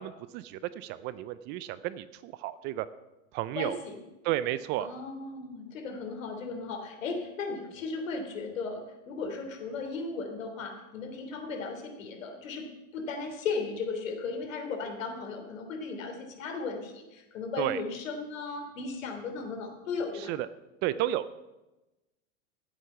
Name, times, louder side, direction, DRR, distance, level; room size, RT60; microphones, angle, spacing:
voice 1, 0.0-2.9 3.3-3.8 4.2-4.9 17.6-17.8 20.1-20.5 20.8-21.4, right 14 dB, 30° right, 15 dB, 0.4 m, -32 dB
voice 2, 3.5-4.0 4.8-12.7 12.9-20.3, left 4 dB, 85° left, 4 dB, 3.4 m, -36 dB
17.0 x 8.1 x 5.7 m, 1.0 s
supercardioid pair, 135°, 38 cm